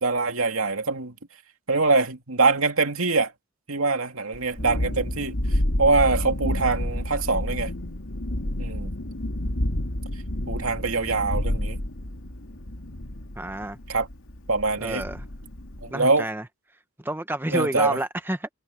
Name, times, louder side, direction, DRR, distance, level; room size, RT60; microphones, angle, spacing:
voice 1, 0.0-1.1 1.7-3.3 3.7-5.3 5.8-7.7 8.6-8.9 10.5-11.8 13.9-14.1 14.5-15.0 15.8-16.3 17.5-18.0, right 3 dB, 80° right, 2.4 m, -23 dB
Thunderstorm, 4.3-15.9, left 1 dB, 80° left, 2.4 m, -30 dB
voice 2, 13.4-13.8 14.8-15.2 15.9-16.4 17.0-18.5, right 1 dB, 10° right, 0.8 m, -29 dB
head